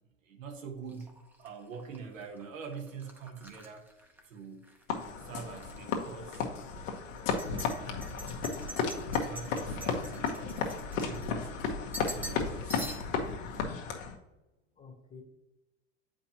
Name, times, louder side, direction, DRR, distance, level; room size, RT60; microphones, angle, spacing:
voice 1, 0.2-1.1 1.4-3.9 4.2-4.7 5.2-6.5 7.2-8.3 9.1-10.7 11.0-11.5 12.0-12.9, right 5 dB, 90° right, 2 dB, 1.2 m, -45 dB
sound 1, 0.9-4.8 5.2-5.8 6.3-6.4 7.2-11.6 11.9-12.4 12.7-13.3, equal, 5° right, 0.7 m, -46 dB
sound 2, 4.9-14.2, left 5 dB, 80° left, 1.2 m, -34 dB
voice 2, 12.2-12.7 14.8-15.2, left 4 dB, 20° left, 2 dB, 1.1 m, -55 dB
7.4 x 5.0 x 2.8 m, 1.0 s
supercardioid pair, 115°, 38 cm